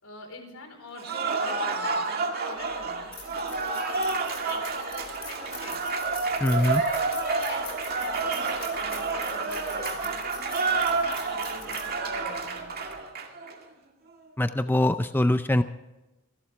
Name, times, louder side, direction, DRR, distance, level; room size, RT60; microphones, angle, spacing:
voice 1, 0.0-5.8 6.8-12.7, left 2 dB, 80° left, 3 dB, 4.2 m, -46 dB
Cheering / Applause, 0.9-13.5, right 4 dB, 45° right, 2.1 m, -29 dB
sound 1, 2.6-13.0, left 5 dB, 25° left, 4.1 m, -45 dB
voice 2, 6.4-6.8 14.4-15.6, left 1 dB, 10° left, 10 dB, 0.4 m, -23 dB
26.5 x 12.0 x 3.4 m, 1.0 s
head